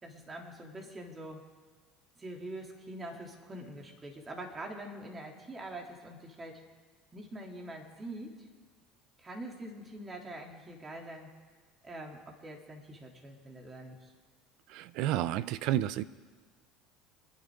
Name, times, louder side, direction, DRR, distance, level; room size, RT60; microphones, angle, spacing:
voice 1, 0.0-1.4 2.2-6.6 7.1-8.3 9.2-11.3 11.8-14.1, right 1 dB, 25° right, 0 dB, 3.3 m, -44 dB
voice 2, 14.7-16.0, right 13 dB, 65° right, 17 dB, 0.6 m, -31 dB
26.5 x 11.0 x 3.9 m, 1.5 s
hypercardioid pair, 80°, 0 cm